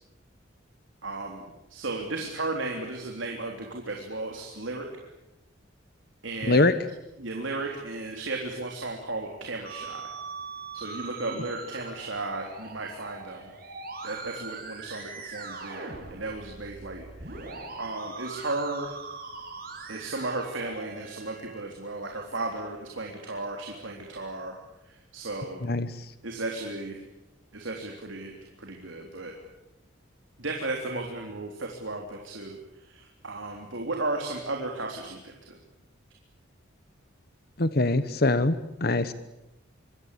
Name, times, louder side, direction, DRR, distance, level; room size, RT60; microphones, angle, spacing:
voice 1, 1.0-1.4 1.7-4.9 6.2-6.7 7.2-10.1 10.7-13.5 14.0-17.5 17.8-18.9 19.9-24.5 24.9-25.6 26.2-27.0 27.5-28.3 28.6-29.3 30.4-35.6, right 2 dB, 75° right, 1 dB, 3.6 m, -35 dB
Musical instrument, 9.7-21.6, right 4 dB, 45° right, 7.3 m, -41 dB
voice 2, 37.6-39.1, left 2 dB, 50° left, 13 dB, 1.0 m, -23 dB
26.0 x 23.0 x 8.5 m, 0.92 s
head